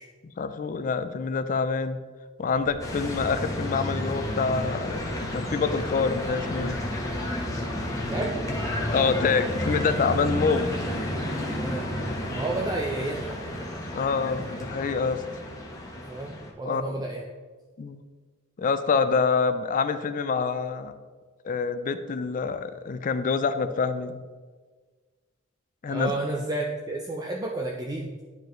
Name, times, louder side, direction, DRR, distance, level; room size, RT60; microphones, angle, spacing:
voice 1, 0.2-2.0 2.4-6.8 8.9-10.6 13.9-15.2 16.6-17.0 17.8-18.0 18.6-20.9 21.4-24.2 25.8-26.1, left 5 dB, 40° left, 11 dB, 0.3 m, -26 dB
sound 1, 2.3-9.3, equal, 75° right, 1.8 m, -45 dB
sound 2, 2.8-16.5, left 1 dB, 15° left, 1.0 m, -31 dB
voice 2, 8.1-8.4 11.6-11.9 12.3-13.5 16.1-17.2 25.9-28.1, right 2 dB, 20° right, 0 dB, 0.5 m, -31 dB
10.5 x 4.7 x 3.1 m, 1.4 s
head